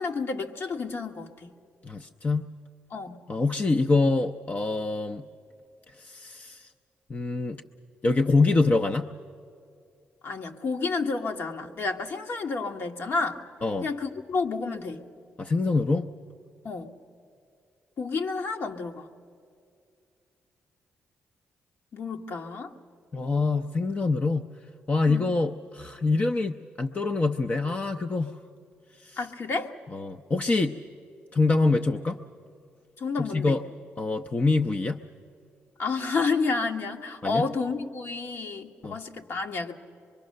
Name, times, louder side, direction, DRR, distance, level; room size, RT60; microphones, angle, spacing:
voice 1, 0.0-1.5 2.9-3.2 10.2-13.4 13.8-15.0 16.6-16.9 18.0-19.1 21.9-22.7 25.1-25.4 29.2-29.7 33.0-33.6 35.8-39.7, left 4 dB, 60° left, 4 dB, 1.5 m, -30 dB
voice 2, 1.8-2.6 3.3-5.3 6.0-6.7 7.1-7.6 8.0-9.1 13.6-13.9 15.4-16.1 23.1-24.5 24.9-28.4 29.0-29.2 29.9-30.8 31.3-32.2 33.2-33.6 34.0-35.0 37.2-37.5 38.8-39.0, left 3 dB, 35° left, 6 dB, 0.7 m, -25 dB
24.0 x 23.0 x 6.6 m, 2.4 s
cardioid pair, 70°, 5 cm